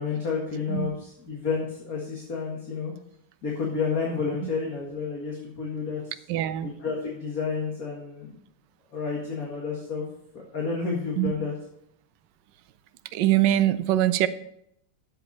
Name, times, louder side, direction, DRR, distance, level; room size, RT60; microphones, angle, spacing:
voice 1, 0.0-2.9 3.4-6.0 6.6-8.3 8.9-10.0 10.5-11.5, left 5 dB, 45° left, -3 dB, 2.2 m, -30 dB
voice 2, 6.3-6.7 11.2-11.3 13.1-14.3, right 13 dB, 75° right, 12 dB, 1.2 m, -23 dB
11.0 x 8.0 x 4.2 m, 0.74 s
omnidirectional pair, 2.1 m